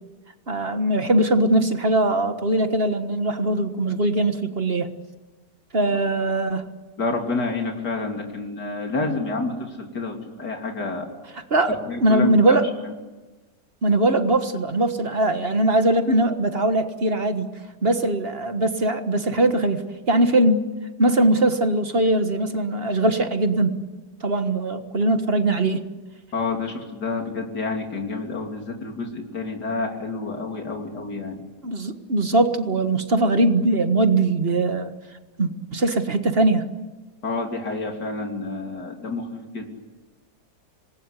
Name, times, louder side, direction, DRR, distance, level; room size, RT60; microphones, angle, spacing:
voice 1, 0.5-4.9 5.7-6.6 11.5-12.7 13.8-17.5 17.8-20.6 21.0-23.8 24.2-25.8 31.6-34.9 35.4-36.6, right 2 dB, 35° right, 8 dB, 1.7 m, -21 dB
voice 2, 7.0-11.1 11.7-12.6 26.3-31.4 37.2-39.7, left 3 dB, 80° left, 2 dB, 3.7 m, -29 dB
26.5 x 20.5 x 9.9 m, 1.2 s
omnidirectional pair, 1.7 m